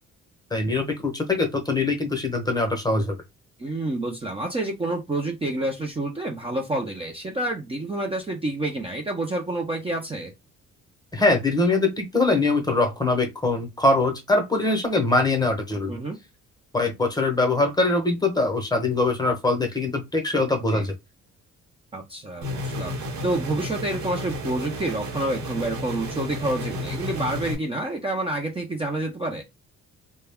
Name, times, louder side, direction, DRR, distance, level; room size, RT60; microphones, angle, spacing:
voice 1, 0.5-3.2 11.1-16.0 16.7-20.9, left 2 dB, 15° left, 0.8 m, -23 dB
voice 2, 3.6-10.3 15.9-16.2 20.7-20.9 21.9-29.4, right 2 dB, 20° right, 0.5 m, -28 dB
sound 1, 22.4-27.5, equal, 70° right, 0.9 m, -32 dB
2.2 x 2.1 x 3.4 m
cardioid pair, 90°, 30 cm